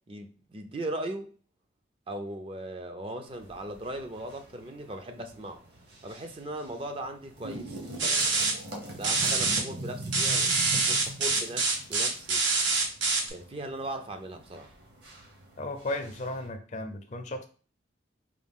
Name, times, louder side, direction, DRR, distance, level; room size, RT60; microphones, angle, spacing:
voice 1, 0.1-1.3 2.1-5.6 6.0-7.9 9.0-12.4 13.3-14.7, right 1 dB, 30° right, 0.4 m, -38 dB
sound 1, 3.2-16.5, right 1 dB, 55° right, 1.0 m, -43 dB
sound 2, 8.0-8.5 9.0-9.6 10.1-13.3, right 3 dB, 85° right, 1.0 m, -25 dB
voice 2, 15.6-17.5, left 1 dB, 40° left, 0.5 m, -35 dB
4.7 x 2.3 x 3.6 m
head